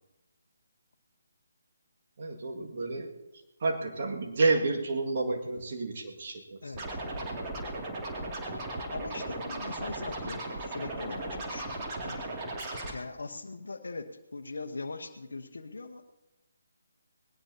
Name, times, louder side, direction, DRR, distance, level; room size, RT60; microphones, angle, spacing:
voice 1, 2.2-3.2 3.6-6.9, right 3 dB, 50° right, 1 dB, 1.9 m, -30 dB
voice 2, 6.6-7.4 7.7-7.9 8.9-12.5 12.9-16.1, left 3 dB, 70° left, 7 dB, 1.0 m, -41 dB
Scratching (performance technique), 6.7-12.9, right 2 dB, 25° right, 2.4 m, -37 dB
20.0 x 17.5 x 2.8 m, 1.0 s
figure-of-eight pair, 145°, 0 cm